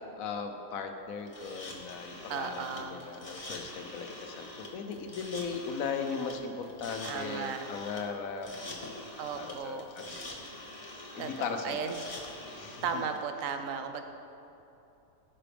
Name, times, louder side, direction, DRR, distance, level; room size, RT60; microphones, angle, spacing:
voice 1, 0.2-9.0 9.3-10.3 11.1-11.9 12.5-13.0, left 5 dB, 90° left, 6 dB, 1.1 m, -38 dB
sound 1, 1.3-13.2, left 1 dB, 25° left, 1.0 m, -45 dB
voice 2, 2.3-3.0 7.0-7.6 9.2-9.8 11.2-11.9 12.8-14.0, right 6 dB, 75° right, 6 dB, 1.1 m, -35 dB
14.5 x 5.9 x 3.3 m, 2.9 s
omnidirectional pair, 1.4 m